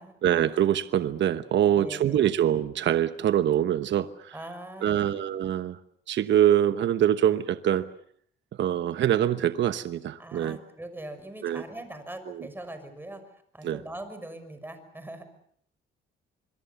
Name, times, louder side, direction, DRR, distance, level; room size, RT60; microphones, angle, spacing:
voice 1, 0.2-4.3 4.8-5.8 6.1-7.9 8.6-10.6 11.4-11.6 12.3-12.5 13.6-13.8, right 10 dB, 65° right, 11 dB, 1.0 m, -24 dB
voice 2, 1.8-2.3 4.3-5.2 10.2-13.2 13.5-15.2, right 1 dB, 10° right, 9 dB, 6.0 m, -41 dB
26.5 x 22.5 x 7.0 m, 0.64 s
cardioid pair, 90°, 20 cm